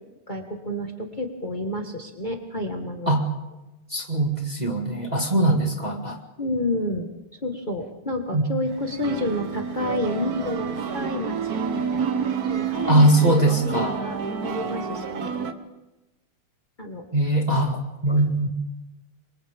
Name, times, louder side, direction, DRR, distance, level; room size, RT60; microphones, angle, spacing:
voice 1, 0.3-3.1 5.5-5.6 6.4-7.1 7.4-15.3 16.8-17.1, left 1 dB, 25° left, 2 dB, 1.7 m, -30 dB
voice 2, 3.9-6.2 8.3-8.4 12.9-14.0 17.1-18.5, right 1 dB, 20° right, 1 dB, 1.8 m, -21 dB
sound 1, 8.7-15.5, right 6 dB, 50° right, 1.6 m, -29 dB
28.5 x 25.0 x 3.7 m, 1.0 s
omnidirectional pair, 2.4 m